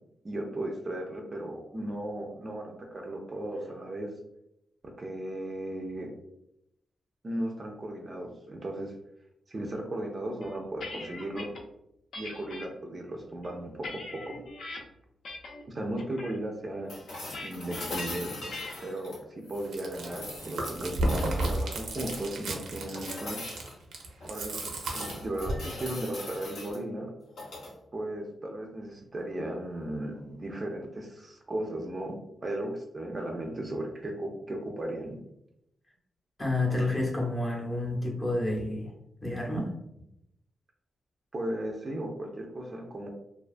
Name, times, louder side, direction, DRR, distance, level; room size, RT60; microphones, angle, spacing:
voice 1, 0.2-4.1 5.0-6.1 7.2-8.9 9.5-11.5 12.2-14.4 15.7-16.9 17.4-18.3 18.8-23.4 24.2-24.6 24.9-27.1 27.9-35.2 41.3-43.1, right 1 dB, 30° right, 1 dB, 0.3 m, -36 dB
sound 1, 10.4-11.6 12.1-12.7 13.3-14.8 15.2-15.6 16.0-16.4 17.3-17.9 18.5-18.9, left 2 dB, 65° left, 0.4 m, -41 dB
sound 2, 16.9-19.7 20.1-22.4 22.9-23.7 24.2-26.8 27.3-27.7 29.8-29.9, left 2 dB, 85° left, 0.9 m, -40 dB
Chewing mastication, 19.6-25.7, right 1 dB, 90° right, 0.5 m, -33 dB
voice 2, 36.4-38.9 39.2-39.7, left 2 dB, 20° left, -2 dB, 0.6 m, -29 dB
2.3 x 2.2 x 2.4 m, 0.81 s
wide cardioid pair, 130°, 0 cm